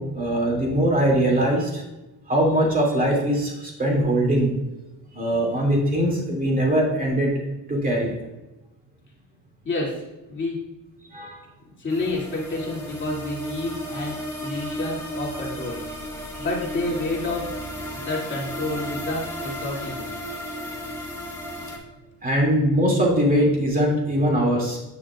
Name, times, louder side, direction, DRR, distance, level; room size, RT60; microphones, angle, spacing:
voice 1, 0.0-1.8 2.3-4.5 5.1-7.3 7.7-8.2 11.1-11.4 14.5-14.6 22.2-24.8, right 1 dB, 20° right, -2 dB, 2.6 m, -21 dB
voice 2, 9.6-10.0 10.3-10.6 11.6-15.8 16.4-17.6 17.9-20.1, left 2 dB, 30° left, -4 dB, 2.7 m, -29 dB
sound 1, 11.9-21.8, equal, 10° left, 2.0 m, -34 dB
9.2 x 6.2 x 2.5 m, 1.0 s
cardioid pair, 100°, 38 cm